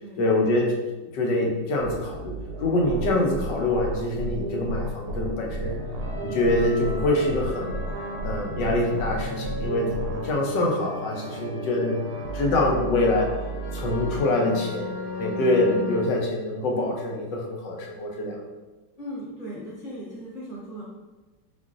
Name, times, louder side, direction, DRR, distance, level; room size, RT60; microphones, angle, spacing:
voice 1, 0.2-0.7 1.1-2.3 2.6-5.8 6.2-7.8 8.2-12.0 12.3-13.3 13.7-18.4, left 2 dB, 70° left, -1 dB, 1.3 m, -25 dB
sound 1, 1.8-14.2, right 2 dB, 70° right, 1.0 m, -34 dB
sound 2, 5.7-16.1, left 3 dB, 50° left, 0.6 m, -37 dB
voice 2, 19.0-20.8, equal, 25° right, -9 dB, 0.8 m, -37 dB
4.5 x 3.8 x 2.5 m, 1.2 s
omnidirectional pair, 2.1 m